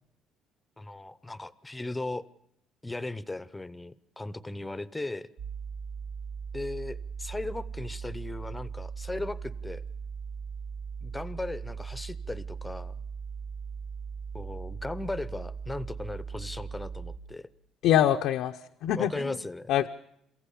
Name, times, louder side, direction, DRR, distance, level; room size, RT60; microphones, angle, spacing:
voice 1, 0.8-2.3 2.8-5.3 6.5-9.8 11.0-12.9 14.3-17.5 18.9-19.7, left 2 dB, 10° left, 16 dB, 0.8 m, -37 dB
sound 1, 5.4-17.2, right 6 dB, 80° right, 3.2 m, -39 dB
voice 2, 17.8-19.4 19.7-19.9, left 11 dB, 80° left, 4 dB, 0.8 m, -25 dB
28.0 x 15.5 x 8.5 m, 0.75 s
cardioid pair, 135°, 0 cm